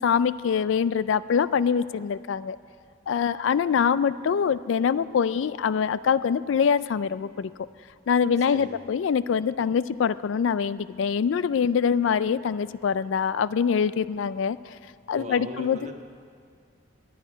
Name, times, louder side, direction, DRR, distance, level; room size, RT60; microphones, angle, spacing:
voice 1, 0.0-2.6 3.1-7.5 8.1-14.6 15.1-15.9, left 7 dB, 80° left, 16 dB, 0.3 m, -24 dB
voice 2, 15.1-16.0, right 1 dB, 35° right, 4 dB, 1.1 m, -38 dB
10.5 x 9.4 x 9.9 m, 2.2 s
head